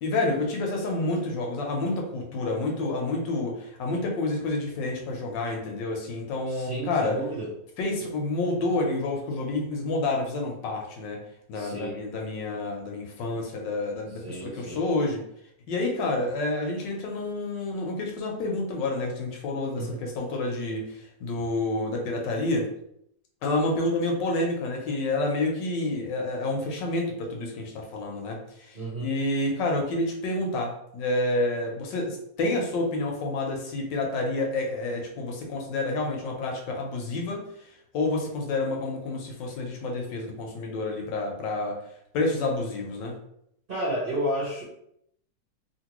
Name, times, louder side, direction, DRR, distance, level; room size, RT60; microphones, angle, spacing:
voice 1, 0.0-7.2 7.8-11.2 11.5-15.2 15.7-22.7 23.4-37.4 37.9-41.8 42.1-43.1, left 2 dB, 80° left, 1 dB, 1.4 m, -29 dB
voice 2, 6.5-7.5 11.5-11.9 14.2-14.8 19.7-20.0 28.7-29.1 43.7-44.6, right 1 dB, 50° right, -6 dB, 0.7 m, -31 dB
2.9 x 2.9 x 2.9 m, 0.74 s
omnidirectional pair, 1.9 m